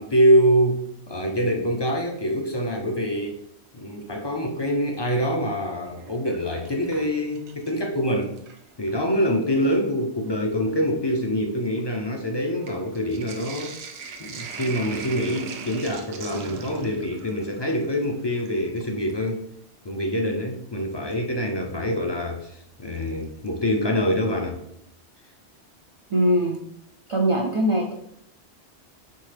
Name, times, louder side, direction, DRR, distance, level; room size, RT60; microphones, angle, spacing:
voice 1, 0.0-3.4 3.7-8.3 8.8-13.8 14.2-19.4 19.8-24.6, equal, 40° left, 2 dB, 0.3 m, -25 dB
Sink (filling or washing), 5.9-7.9 8.2-9.0 9.8-9.9 10.2-19.3 21.1-21.2 23.0-23.5 23.8-23.9 24.1-24.2, right 5 dB, 80° right, 0.9 m, -41 dB
voice 2, 26.1-26.6 27.1-28.0, equal, 60° right, 1 dB, 0.3 m, -21 dB
4.4 x 3.5 x 3.3 m, 0.72 s
omnidirectional pair, 1.1 m